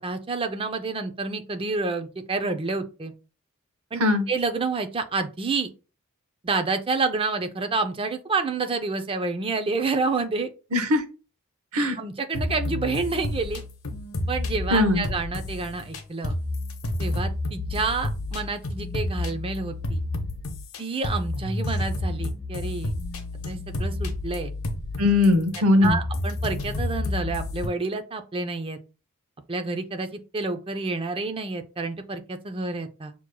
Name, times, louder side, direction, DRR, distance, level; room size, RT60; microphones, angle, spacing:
voice 1, 0.0-3.1 3.9-5.7 6.4-10.5 12.0-13.6 14.3-16.3 17.0-20.0 20.8-22.9 23.4-24.5 25.8-28.8 29.5-33.1, right 3 dB, 25° right, 8 dB, 0.5 m, -29 dB
voice 2, 10.7-11.0 11.7-12.0 14.7-15.1 25.0-26.0, left 2 dB, 80° right, 8 dB, 0.8 m, -20 dB
sound 1, 12.3-20.8 21.0-27.7, left 2 dB, 70° left, 0.8 m, -30 dB
6.1 x 2.9 x 2.2 m, 0.33 s
head